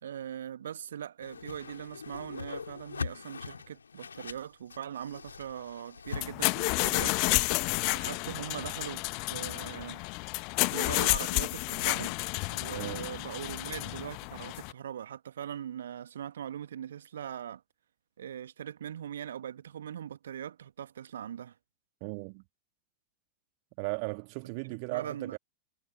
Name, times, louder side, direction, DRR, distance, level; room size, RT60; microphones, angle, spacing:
voice 1, 0.0-7.2 7.5-10.0 10.7-12.2 12.5-17.6 18.2-21.6 24.9-25.4, right 9 dB, 65° right, 1.5 m, -41 dB
Whoosh swoosh swish, 1.2-6.2, left 5 dB, 75° left, 4.2 m, -41 dB
sound 1, 6.1-14.7, left 35 dB, 45° left, 0.9 m, -31 dB
voice 2, 12.8-13.2 22.0-22.4 23.8-25.4, right 37 dB, 45° right, 1.9 m, -37 dB
figure-of-eight pair, 90°, 0 cm